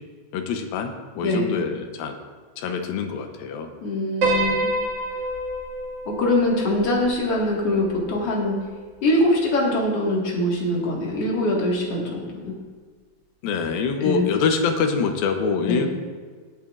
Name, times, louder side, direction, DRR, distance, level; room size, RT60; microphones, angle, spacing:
voice 1, 0.3-2.1 2.6-3.7 13.4-15.9, left 5 dB, 80° left, 5 dB, 2.6 m, -25 dB
voice 2, 1.2-1.5 3.8-4.7 6.1-8.6 9.0-12.5 14.0-14.3 15.6-15.8, left 1 dB, 50° left, -2 dB, 2.3 m, -23 dB
Piano, 4.2-8.6, right 1 dB, 45° right, 2.4 m, -28 dB
18.5 x 8.7 x 2.5 m, 1.5 s
omnidirectional pair, 4.3 m